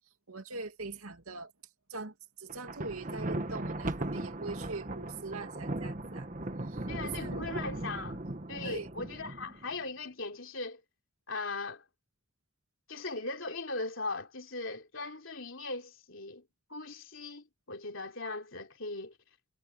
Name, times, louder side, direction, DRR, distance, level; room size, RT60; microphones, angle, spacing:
voice 1, 0.3-1.5 1.9-6.3 6.7-7.5 8.6-8.9, right 3 dB, 85° right, 2.5 m, -42 dB
Thunder, 2.5-9.7, right 1 dB, 35° right, 1.4 m, -38 dB
voice 2, 6.9-8.2 8.5-10.8 11.3-11.8 12.9-16.4 16.7-19.2, left 3 dB, 65° left, 3.6 m, -39 dB
head